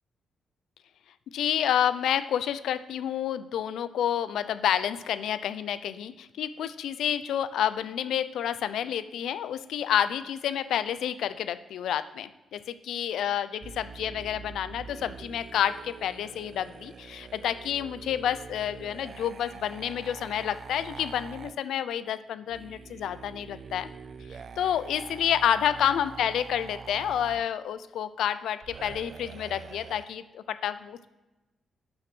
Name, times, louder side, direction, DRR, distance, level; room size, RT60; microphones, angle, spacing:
voice 1, 1.3-23.9 24.6-31.1, left 10 dB, 85° left, 15 dB, 0.5 m, -29 dB
sound 1, 13.6-21.5 22.5-27.5 28.6-30.1, right 6 dB, 45° right, 0.4 m, -45 dB
12.0 x 6.2 x 6.1 m, 1.1 s
cardioid pair, 145°, 0 cm